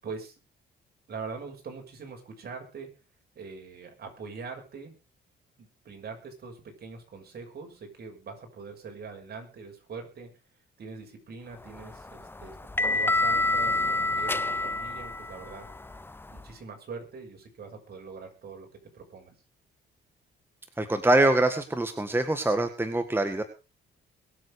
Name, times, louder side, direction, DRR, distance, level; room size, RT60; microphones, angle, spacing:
voice 1, 0.0-0.4 1.1-2.9 3.3-4.9 5.6-10.3 10.8-12.6 12.9-13.8 14.1-15.7 16.3-18.7 18.9-19.3, right 4 dB, 55° right, 3 dB, 6.4 m, -42 dB
sound 1, 11.7-16.5, left 2 dB, 10° left, 0.6 m, -28 dB
voice 2, 20.8-23.4, right 2 dB, 10° right, 8 dB, 1.8 m, -24 dB
22.5 x 7.7 x 5.0 m, 0.32 s
cardioid pair, 90°, 20 cm